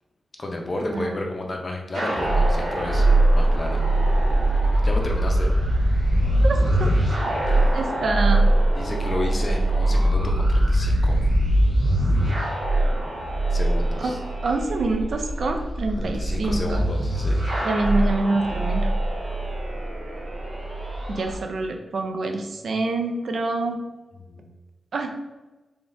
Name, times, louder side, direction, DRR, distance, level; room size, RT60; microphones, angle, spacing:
voice 1, 0.4-3.1 3.3-3.8 4.8-5.5 7.5-7.8 8.7-11.2 13.5-14.2 16.0-17.4 24.3-24.5, left 1 dB, 30° left, 1 dB, 0.5 m, -31 dB
sound 1, 1.9-21.4, right 1 dB, 80° right, 1.1 m, -22 dB
voice 2, 6.4-7.0 7.7-8.5 14.0-16.9 17.6-18.9 21.1-23.8 24.9-25.1, right 2 dB, 60° right, 5 dB, 0.4 m, -26 dB
3.8 x 3.4 x 2.5 m, 1.1 s
wide cardioid pair, 155°, 0 cm